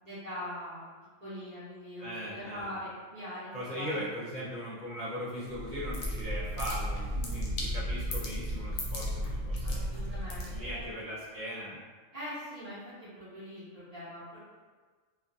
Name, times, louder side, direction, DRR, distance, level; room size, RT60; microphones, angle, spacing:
voice 1, 0.0-0.9 1.2-4.0 7.1-7.5 9.6-10.9 12.1-12.8 13.2-14.4, equal, 35° right, -12 dB, 0.8 m, -42 dB
voice 2, 2.0-2.7 3.5-10.2 10.4-11.8, equal, 50° left, -10 dB, 0.7 m, -39 dB
sound 1, 5.5-10.9, equal, 75° left, 0.9 m, -34 dB
2.5 x 2.4 x 2.5 m, 1.5 s
omnidirectional pair, 1.3 m